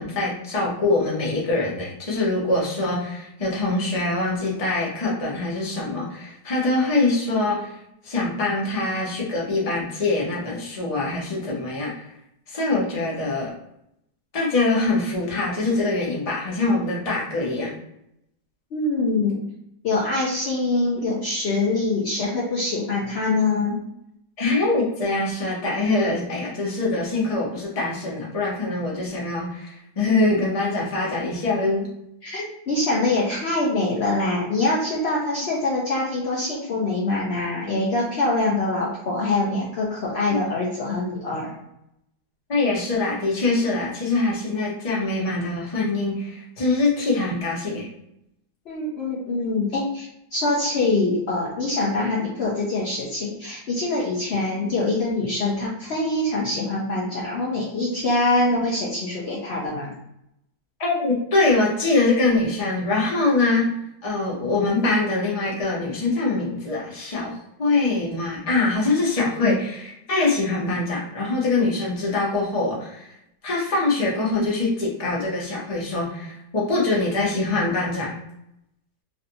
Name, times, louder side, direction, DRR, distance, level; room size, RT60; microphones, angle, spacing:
voice 1, 0.0-7.8 8.0-12.1 12.5-13.5 14.3-17.7 24.4-31.9 40.3-40.4 42.5-47.9 60.8-63.7 64.0-73.1 73.4-78.2, left 2 dB, 35° left, -4 dB, 0.6 m, -23 dB
voice 2, 18.7-19.4 19.8-23.8 32.2-41.5 48.7-59.9 69.4-69.6, left 2 dB, 75° left, -5 dB, 0.5 m, -24 dB
3.2 x 2.6 x 2.7 m, 0.79 s
omnidirectional pair, 1.9 m